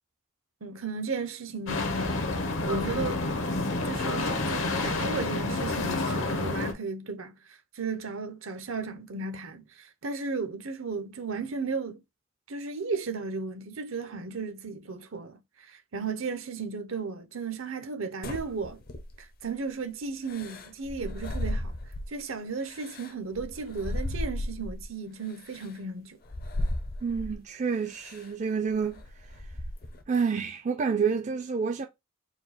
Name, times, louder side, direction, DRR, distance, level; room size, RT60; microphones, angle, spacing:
voice 1, 0.6-1.9 2.6-3.4 3.8-12.0 12.5-18.8 19.2-21.7 22.1-26.2, right 4 dB, 70° right, 0.8 m, -35 dB
sound 1, 1.7-6.7, left 2 dB, 70° left, 1.0 m, -29 dB
sound 2, 18.2-19.4 20.3-22.2 22.6-24.9 25.5-25.7 26.2-27.4 27.9-28.3 28.7-30.0, left 1 dB, 45° left, 0.7 m, -35 dB
voice 2, 27.0-29.0 30.1-31.9, right 5 dB, 35° right, 0.4 m, -28 dB
4.4 x 2.3 x 4.1 m
head